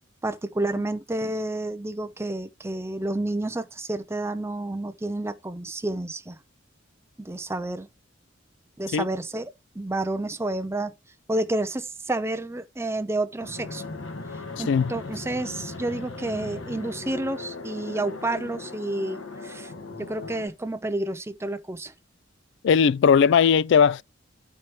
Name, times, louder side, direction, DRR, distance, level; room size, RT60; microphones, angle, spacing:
voice 1, 0.2-6.4 7.2-7.9 8.8-9.5 9.8-10.9 11.3-13.8 14.6-19.7 20.0-21.9, right 2 dB, 15° right, 0.5 m, -30 dB
Fixed-wing aircraft airplane, 13.4-20.5, left 3 dB, 80° left, 1.6 m, -38 dB
voice 2, 22.6-24.0, left 7 dB, 65° left, 0.3 m, -18 dB
13.0 x 4.5 x 2.9 m
head